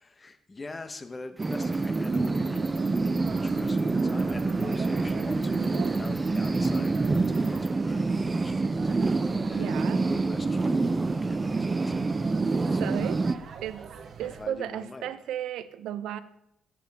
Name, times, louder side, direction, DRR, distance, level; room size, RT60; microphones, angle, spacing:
voice 1, 0.0-2.8 3.4-8.8 9.5-10.8 11.2-12.1 12.7-13.1 14.2-15.2, left 3 dB, 25° left, 10 dB, 0.9 m, -43 dB
Cricket, 1.4-7.7, equal, ahead, 1.3 m, -50 dB
sound 1, 1.4-13.3, right 3 dB, 25° right, 0.5 m, -27 dB
sound 2, 2.5-14.5, right 6 dB, 60° right, 0.8 m, -45 dB
voice 2, 5.5-6.0 9.5-10.0 12.8-13.2 13.6-13.9 14.2-16.2, right 11 dB, 85° right, 14 dB, 0.6 m, -34 dB
13.5 x 8.5 x 3.4 m, 0.83 s
cardioid pair, 90°, 0 cm